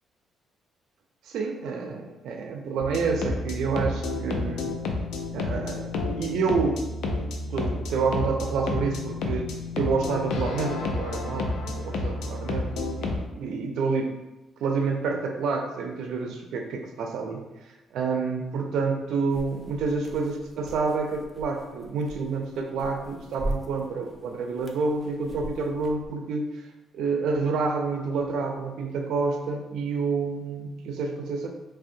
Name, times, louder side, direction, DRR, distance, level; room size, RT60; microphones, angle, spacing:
voice 1, 1.2-4.8 5.3-14.1 14.6-26.7 26.9-31.5, right 4 dB, 80° right, 2 dB, 0.3 m, -29 dB
sound 1, 2.8-13.2, left 3 dB, 80° left, 0.4 m, -30 dB
sound 2, 19.3-26.1, right 1 dB, 5° right, 0.4 m, -40 dB
3.4 x 2.0 x 2.6 m, 1.0 s
cardioid pair, 90°, 0 cm